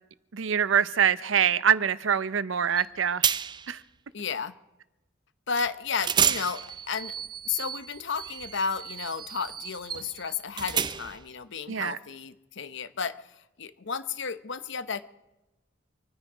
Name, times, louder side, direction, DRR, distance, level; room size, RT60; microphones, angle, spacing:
voice 1, 0.3-3.3 3.7-3.8 11.7-12.0, right 8 dB, 70° right, 17 dB, 0.7 m, -24 dB
sound 1, 2.8-2.9 3.2-3.7 5.6-5.7 6.0-11.3, right 8 dB, 25° right, 0.4 m, -31 dB
voice 2, 4.1-4.5 5.5-15.0, left 5 dB, 65° left, 13 dB, 0.9 m, -33 dB
26.5 x 9.8 x 5.0 m, 1.0 s
head